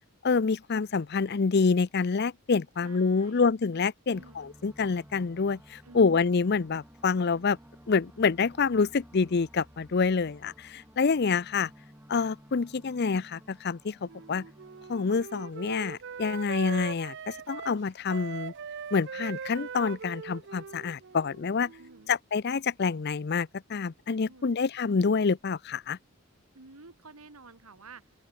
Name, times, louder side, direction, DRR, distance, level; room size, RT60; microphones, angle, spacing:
voice 1, 0.2-7.6 7.9-11.7 12.1-14.4 14.9-18.5 18.9-21.7 22.1-26.0, left 5 dB, 50° left, 0.5 m, -27 dB
voice 2, 2.8-3.5 4.1-4.5 5.8-6.2 21.8-22.1 24.2-24.6 26.5-28.1, right 3 dB, 85° right, 2.2 m, -51 dB
sound 1, 4.1-15.2, equal, 10° right, 2.6 m, -54 dB
Wind instrument woodwind instrument, 14.1-22.1, right 6 dB, 55° right, 0.5 m, -41 dB
open air
head